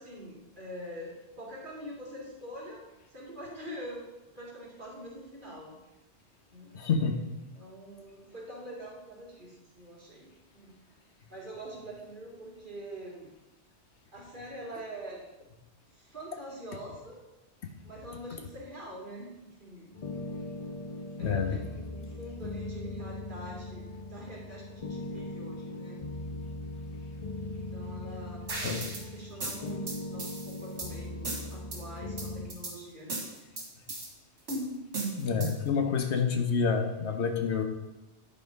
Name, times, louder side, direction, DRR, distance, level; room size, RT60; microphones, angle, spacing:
voice 1, 0.0-4.0 4.3-5.7 6.5-6.7 7.5-10.7 11.3-13.3 14.1-15.3 16.0-17.2 17.8-19.3 19.6-19.9 21.2-23.8 24.1-26.0 27.4-33.1, right 1 dB, 45° right, -4 dB, 2.4 m, -44 dB
voice 2, 6.7-7.2 21.2-21.6 28.6-28.9 35.2-37.6, left 5 dB, 75° left, 5 dB, 1.2 m, -28 dB
sound 1, 19.9-32.5, left 2 dB, 40° left, 0.6 m, -39 dB
sound 2, 28.5-29.0 29.4-30.9 31.2-31.8 32.2-32.7 33.1-34.1 34.5-35.7, right 2 dB, 75° right, 2.1 m, -36 dB
10.0 x 4.3 x 5.2 m, 0.99 s
omnidirectional pair, 1.2 m